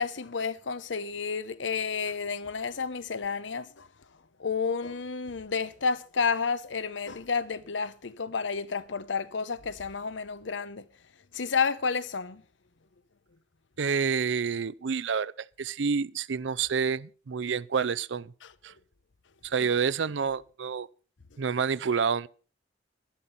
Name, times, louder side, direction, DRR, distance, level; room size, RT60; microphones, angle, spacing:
voice 1, 0.0-3.9 4.4-10.8 11.3-12.4 18.4-18.5 19.6-19.7, left 5 dB, 85° left, 0.8 m, -31 dB
voice 2, 13.8-18.3 18.6-18.7 19.4-20.9 21.4-22.3, right 6 dB, 80° right, 0.5 m, -28 dB
11.5 x 11.5 x 5.5 m
head